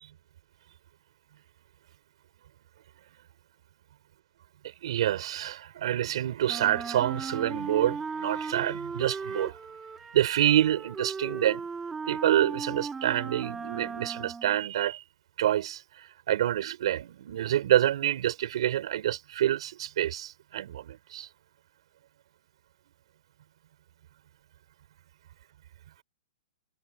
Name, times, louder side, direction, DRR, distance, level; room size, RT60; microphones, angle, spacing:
voice 1, 4.8-9.6 10.1-11.6 12.1-15.0 15.4-15.8 16.3-21.3, right 12 dB, 55° right, 3.8 m, -27 dB
Wind instrument woodwind instrument, 6.5-14.6, right 5 dB, 10° right, 1.7 m, -37 dB
hypercardioid pair, 165°, 4 cm